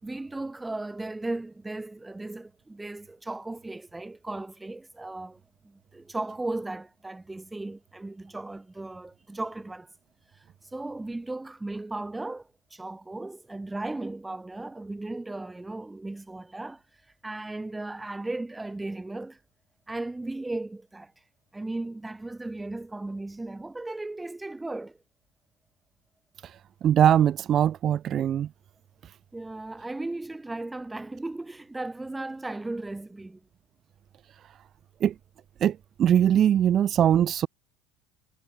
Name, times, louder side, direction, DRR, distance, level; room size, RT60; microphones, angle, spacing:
voice 1, 0.0-9.9 10.7-16.8 17.2-19.4 19.9-21.1 21.5-25.0 29.3-33.4, right 2 dB, 10° right, 5.5 m, -36 dB
voice 2, 26.8-28.5 35.0-35.1 35.6-37.5, right 10 dB, 45° right, 0.3 m, -21 dB
hypercardioid pair, 85°, 0 cm